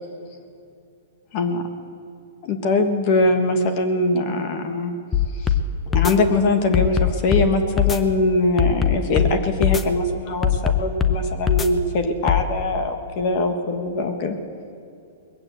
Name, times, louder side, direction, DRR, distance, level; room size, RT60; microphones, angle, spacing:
voice 1, 1.3-1.7 2.4-4.9 5.3-5.5 5.9-14.4, left 2 dB, 40° left, 7 dB, 1.4 m, -22 dB
sound 1, 5.1-5.6 5.9-6.1 6.7-7.5 7.8-8.0 8.6-9.3 9.6-9.8 10.4-11.2 11.5-11.7 12.3-12.4, left 8 dB, 10° left, 0.7 m, -19 dB
20.5 x 8.5 x 8.0 m, 2.5 s
hypercardioid pair, 155°, 0 cm